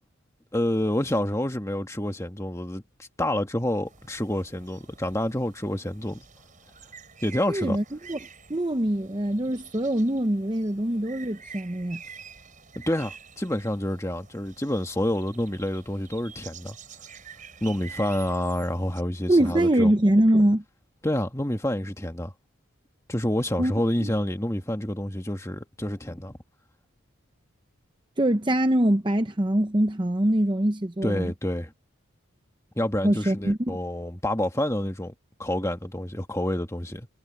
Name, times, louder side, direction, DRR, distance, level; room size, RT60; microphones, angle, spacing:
voice 1, 0.5-6.3 7.2-7.8 12.8-16.8 17.6-19.9 21.0-22.3 23.1-26.4 31.0-31.7 32.8-35.1 35.4-37.1, left 1 dB, 15° left, 1.7 m, -28 dB
sound 1, 3.9-19.0, right 6 dB, 35° right, 7.3 m, -48 dB
voice 2, 7.5-8.2 8.5-12.0 19.3-20.6 23.6-23.7 24.0-24.1 28.2-31.3 33.0-33.8, right 1 dB, 20° right, 0.8 m, -23 dB
head